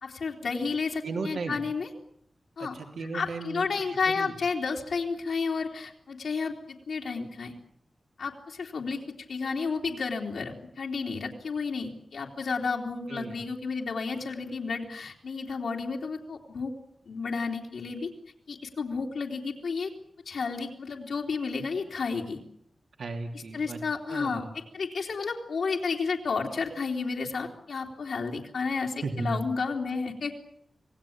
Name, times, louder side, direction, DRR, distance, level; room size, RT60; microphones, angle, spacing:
voice 1, 0.0-1.9 2.6-2.8 3.1-7.5 8.2-9.0 9.3-16.7 17.0-18.1 18.5-19.9 20.2-22.4 23.5-24.4 24.7-30.4, left 4 dB, 90° left, -1 dB, 3.3 m, -31 dB
voice 2, 1.0-1.6 2.6-3.7 4.1-4.3 13.1-13.4 23.0-23.8 24.1-24.5 29.0-29.4, right 3 dB, 85° right, 4 dB, 3.1 m, -35 dB
26.5 x 18.5 x 8.8 m, 0.70 s
wide cardioid pair, 110°, 0 cm